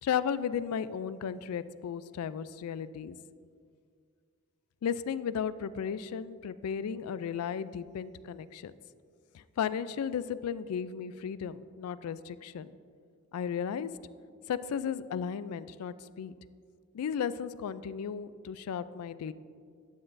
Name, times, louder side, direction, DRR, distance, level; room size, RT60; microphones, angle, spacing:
voice 1, 0.0-3.2 4.8-8.7 9.3-12.7 13.3-13.9 14.5-16.3 16.9-19.3, left 7 dB, 85° left, 15 dB, 0.3 m, -34 dB
11.5 x 8.9 x 2.6 m, 2.2 s
head